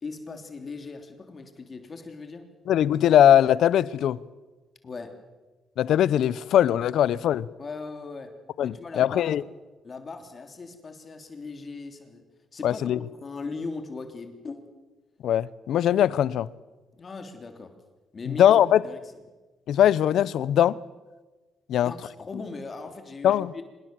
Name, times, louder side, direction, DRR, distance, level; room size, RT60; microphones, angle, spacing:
voice 1, 0.0-2.5 4.8-5.2 7.6-9.3 9.8-12.2 12.5-14.7 17.0-17.7 18.1-19.0 21.7-23.6, left 4 dB, 40° left, 3.3 m, -39 dB
voice 2, 2.7-4.2 5.8-7.5 8.6-9.4 12.6-13.0 15.2-16.5 18.3-18.8 19.7-20.8 21.7-21.9 23.2-23.5, left 11 dB, 75° left, 0.8 m, -21 dB
25.0 x 21.0 x 7.6 m
cardioid pair, 90°, 0 cm